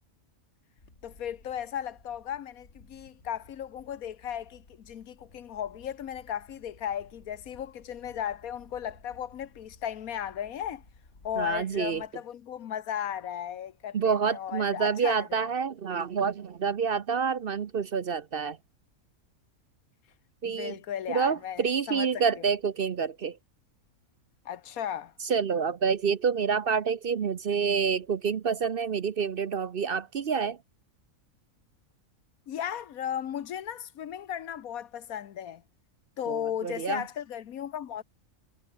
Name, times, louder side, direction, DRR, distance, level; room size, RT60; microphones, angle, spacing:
Wind, 0.8-12.1, left 3 dB, 55° left, 3.5 m, -57 dB
voice 1, 1.0-10.8 11.2-15.5 20.4-22.1 22.4-22.5 24.4-25.1 32.5-35.6 36.2-38.0, left 9 dB, 90° left, 1.4 m, -36 dB
voice 2, 11.4-12.0 13.9-18.6 20.4-20.8 21.1-23.4 25.2-30.6 36.3-37.0, right 6 dB, 50° right, 0.8 m, -28 dB
omnidirectional pair, 1.5 m